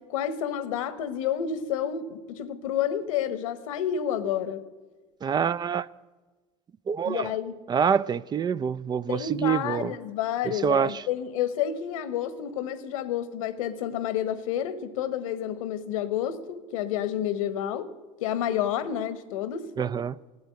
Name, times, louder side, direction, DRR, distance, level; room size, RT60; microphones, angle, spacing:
voice 1, 0.1-4.6 7.0-7.6 9.1-17.9 18.2-19.7, left 9 dB, 85° left, 1.0 m, -29 dB
voice 2, 5.2-5.9 6.9-7.3 7.7-9.9 10.4-11.0 19.8-20.1, right 7 dB, 25° right, 0.3 m, -26 dB
14.0 x 8.1 x 9.5 m
hypercardioid pair, 90°, 17 cm